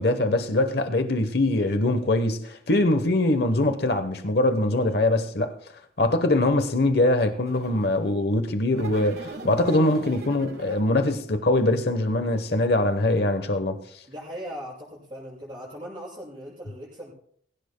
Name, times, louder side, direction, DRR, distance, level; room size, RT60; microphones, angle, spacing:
voice 1, 0.0-5.5 6.0-13.8, left 2 dB, 55° left, 1.0 m, -23 dB
voice 2, 4.7-5.0 14.1-17.1, equal, 25° right, 6.4 m, -39 dB
sound 1, 7.5-8.1 8.7-11.0, right 2 dB, 55° right, 1.4 m, -40 dB
21.5 x 17.0 x 2.2 m
head